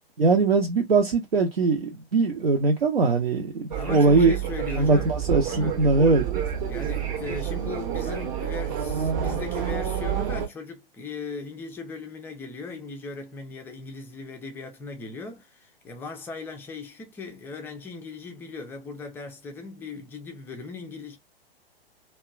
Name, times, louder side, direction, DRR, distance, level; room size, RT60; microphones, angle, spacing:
voice 1, 0.2-4.3 4.8-6.2, right 3 dB, 75° right, 0.7 m, -21 dB
sound 1, 3.7-10.5, right 8 dB, 35° right, 0.7 m, -29 dB
voice 2, 3.8-5.1 5.5-5.8 6.7-21.2, left 4 dB, 5° left, 0.4 m, -38 dB
2.9 x 2.2 x 2.3 m
figure-of-eight pair, 105°, 30 cm